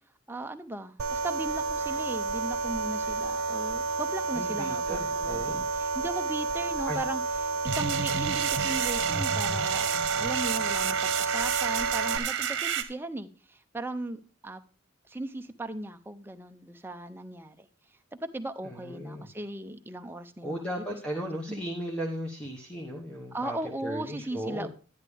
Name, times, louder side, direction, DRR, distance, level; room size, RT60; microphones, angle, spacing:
voice 1, 0.3-14.6 15.1-17.7 18.1-20.8 21.1-21.6 23.3-24.7, right 2 dB, 10° right, 0.5 m, -37 dB
sound 1, 1.0-12.2, right 3 dB, 85° right, 0.6 m, -31 dB
voice 2, 4.3-5.6 6.9-7.0 18.6-19.3 20.4-23.6 23.8-24.7, equal, 5° left, 1.0 m, -36 dB
sound 2, 7.7-12.8, right 8 dB, 55° right, 1.1 m, -30 dB
11.0 x 10.5 x 3.4 m
head